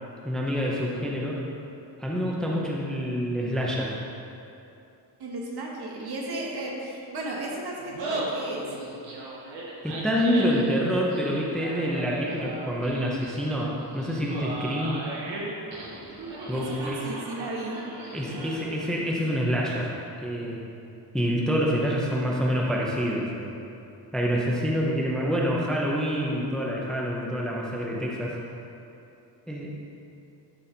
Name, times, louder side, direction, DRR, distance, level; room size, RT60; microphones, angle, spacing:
voice 1, 0.2-1.4 2.0-4.0 9.8-15.0 16.5-17.1 18.1-19.9 20.2-20.6 21.1-23.6 24.1-28.4 29.5-29.8, equal, ahead, -3 dB, 0.6 m, -27 dB
voice 2, 5.2-8.6 16.5-17.8, right 1 dB, 60° right, -2 dB, 1.4 m, -34 dB
Laughter, 7.8-18.9, right 2 dB, 85° right, 1.6 m, -37 dB
11.0 x 3.9 x 4.3 m, 2.8 s
wide cardioid pair, 170°, 43 cm